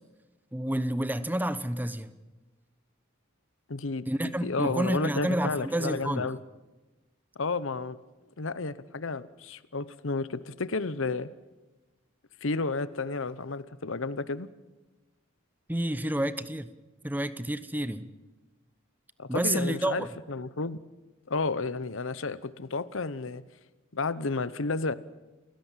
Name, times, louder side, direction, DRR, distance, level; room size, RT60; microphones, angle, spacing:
voice 1, 0.5-2.1 4.1-6.3 15.7-16.7 17.0-18.1 19.3-20.1, right 1 dB, 10° right, 0.9 m, -29 dB
voice 2, 3.7-4.0 4.4-6.4 7.4-8.0 8.4-11.3 12.4-14.5 19.2-20.8 21.3-23.4 23.9-24.9, left 3 dB, 65° left, 0.9 m, -31 dB
28.5 x 17.0 x 7.5 m
head